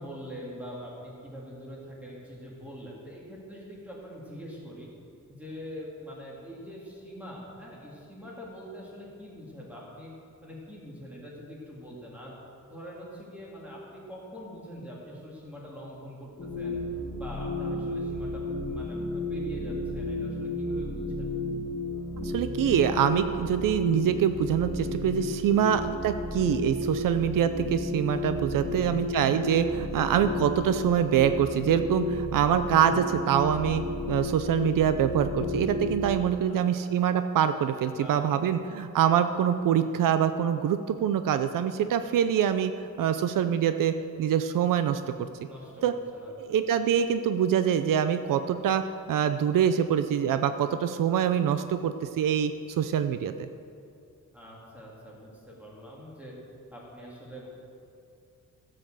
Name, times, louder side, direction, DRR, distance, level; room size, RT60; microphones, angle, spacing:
voice 1, 0.0-4.9 5.4-10.1 10.4-12.3 12.7-16.8 17.2-21.2 25.4-25.8 28.5-29.0 36.0-36.9 38.0-38.6 45.5-46.6 54.3-56.3 56.7-57.5, equal, 5° right, -5 dB, 3.0 m, -44 dB
sound 1, 16.4-36.1, left 1 dB, 35° left, 1.8 m, -32 dB
voice 2, 22.2-45.0 45.8-45.9 46.4-52.5 52.8-53.5, right 9 dB, 75° right, 10 dB, 0.6 m, -25 dB
14.5 x 7.7 x 7.7 m, 2.5 s
wide cardioid pair, 175°, 33 cm